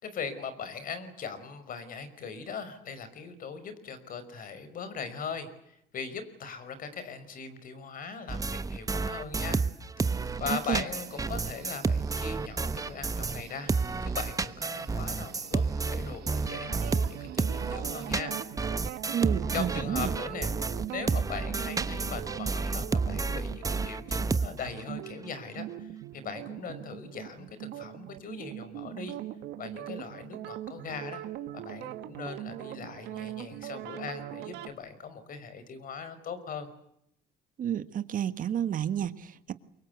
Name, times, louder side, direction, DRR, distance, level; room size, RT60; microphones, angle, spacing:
voice 1, 0.0-9.6 10.4-13.7 14.0-18.4 19.5-20.5 20.9-25.9 26.1-29.2 29.6-31.3 31.5-36.7, left 6 dB, 55° left, 12 dB, 5.4 m, -40 dB
sound 1, 8.3-13.4 13.7-24.8, right 4 dB, 20° right, 1.1 m, -30 dB
sound 2, 10.0-18.4, right 9 dB, 70° right, 5.3 m, -51 dB
voice 2, 10.5-10.8 19.1-20.1 37.6-39.5, right 10 dB, 55° right, 12 dB, 1.5 m, -31 dB
sound 3, 16.4-34.7, right 13 dB, 85° right, 2.2 m, -41 dB
28.5 x 24.0 x 8.2 m, 0.78 s
cardioid pair, 110°, 17 cm